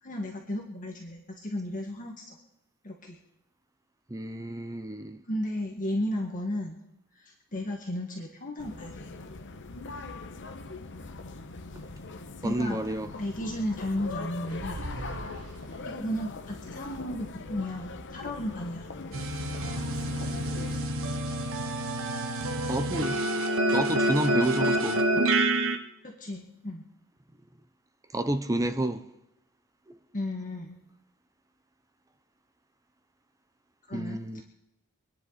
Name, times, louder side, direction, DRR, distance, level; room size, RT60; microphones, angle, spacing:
voice 1, 0.0-2.4 2.8-3.2 5.3-6.8 7.1-9.1 12.4-14.8 15.8-18.9 26.0-26.8 30.1-30.8 33.9-34.4, left 1 dB, 35° left, 1.9 m, -34 dB
voice 2, 4.1-5.2 12.4-13.1 22.7-23.3 23.7-25.0 28.1-29.0 33.9-34.4, right 1 dB, 15° right, 0.7 m, -30 dB
sound 1, 8.6-20.8, left 3 dB, 55° left, 1.0 m, -41 dB
sound 2, 14.5-16.1, right 2 dB, 85° right, 1.5 m, -40 dB
sound 3, 19.1-25.8, right 1 dB, 65° right, 1.3 m, -27 dB
26.5 x 10.5 x 4.2 m
head